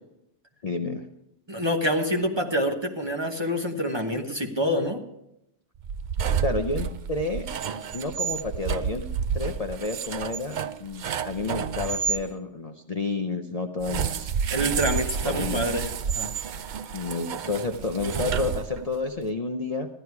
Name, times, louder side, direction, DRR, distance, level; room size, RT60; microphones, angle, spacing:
voice 1, 0.6-1.1 6.4-7.5 7.9-9.0 9.3-14.3 15.2-15.6 16.9-19.9, left 3 dB, 40° left, 4 dB, 0.7 m, -30 dB
voice 2, 1.5-5.0 14.5-15.9 16.1-16.3, equal, 25° right, 3 dB, 1.1 m, -26 dB
sound 1, 5.8-12.2 13.8-19.0, right 7 dB, 55° right, 0.5 m, -30 dB
14.5 x 11.5 x 4.7 m, 0.85 s
omnidirectional pair, 1.2 m